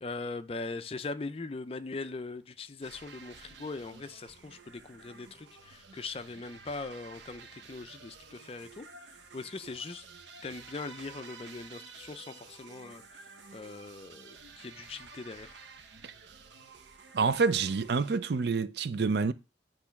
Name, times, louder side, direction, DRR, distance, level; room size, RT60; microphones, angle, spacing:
voice 1, 0.0-10.0 10.4-15.6, left 3 dB, 30° left, 0.4 m, -41 dB
sound 1, 2.8-18.2, right 4 dB, 80° right, 0.8 m, -51 dB
voice 2, 17.1-19.3, right 4 dB, 65° right, 0.4 m, -27 dB
8.3 x 3.2 x 5.8 m
head